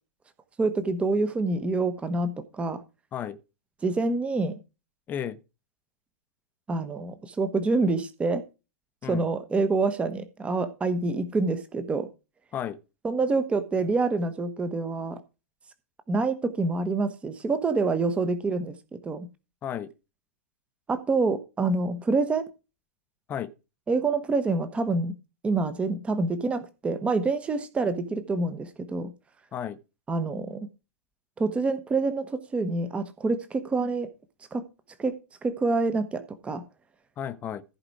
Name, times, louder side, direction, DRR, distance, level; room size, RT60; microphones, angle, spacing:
voice 1, 0.6-2.8 3.8-4.5 6.7-8.4 9.1-12.1 13.0-15.2 16.1-19.3 20.9-22.5 23.9-25.2 25.4-29.1 30.1-30.7 31.4-34.1 34.5-34.6 35.0-35.1 35.4-36.6, right 3 dB, 15° right, 1.1 m, -27 dB
voice 2, 5.1-5.4 9.0-9.3 12.5-12.8 19.6-19.9 23.3-23.5 29.5-29.8 37.2-37.6, left 9 dB, 20° left, 0.7 m, -33 dB
14.5 x 5.0 x 4.8 m
figure-of-eight pair, 110°, 9 cm